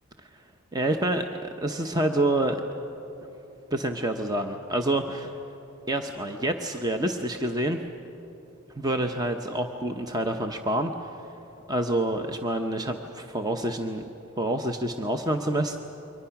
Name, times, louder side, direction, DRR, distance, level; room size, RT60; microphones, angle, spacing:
voice 1, 0.7-2.6 3.7-5.3 5.9-7.8 8.8-11.1 11.7-14.0 14.4-15.8, right 1 dB, 15° right, 5 dB, 0.7 m, -27 dB
28.5 x 23.5 x 5.9 m, 3.0 s
head